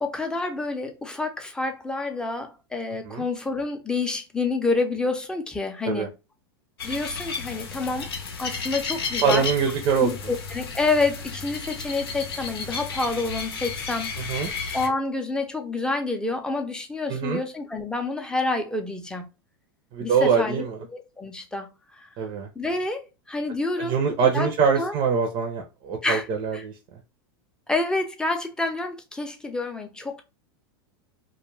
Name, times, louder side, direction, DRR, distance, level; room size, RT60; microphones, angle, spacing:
voice 1, 0.0-6.1 6.8-8.1 8.4-9.5 10.0-14.1 14.7-19.2 20.0-22.1 22.6-24.0 24.3-24.5 24.8-24.9 26.0-26.3 26.5-26.7 27.7-30.2, left 3 dB, 5° left, 0.5 m, -28 dB
sound 1, 6.8-14.9, left 5 dB, 85° left, 0.7 m, -33 dB
voice 2, 9.2-10.1 14.3-14.5 17.1-17.4 19.9-20.8 22.2-22.5 23.8-26.7, right 6 dB, 45° right, 0.6 m, -23 dB
2.3 x 2.1 x 3.1 m
hypercardioid pair, 110°, 12 cm